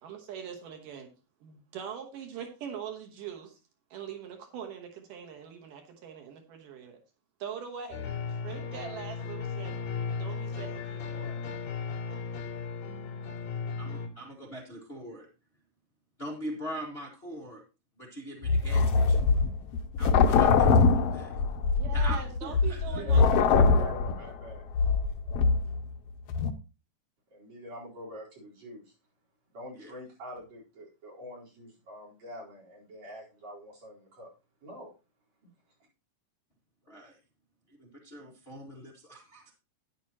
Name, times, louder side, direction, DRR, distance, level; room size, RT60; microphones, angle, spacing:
voice 1, 0.0-1.1 1.4-3.6 3.9-7.0 7.4-9.8 10.2-11.4 21.8-24.0, right 8 dB, 80° right, 4 dB, 2.9 m, -42 dB
sound 1, 7.9-14.1, left 5 dB, 55° left, 4.1 m, -36 dB
voice 2, 13.4-15.3 16.2-17.6 18.0-19.4 20.0-21.3 21.9-23.3 29.7-29.9 36.8-37.2 37.7-39.5, right 1 dB, 25° left, -1 dB, 1.3 m, -42 dB
sound 2, 18.4-25.9 26.3-26.5, left 4 dB, 80° left, 1.3 m, -23 dB
voice 3, 23.6-24.6 27.3-28.9 29.5-34.3 34.6-34.9 35.4-35.5, equal, 55° right, -4 dB, 5.3 m, -45 dB
11.0 x 10.0 x 3.0 m, 0.31 s
omnidirectional pair, 3.8 m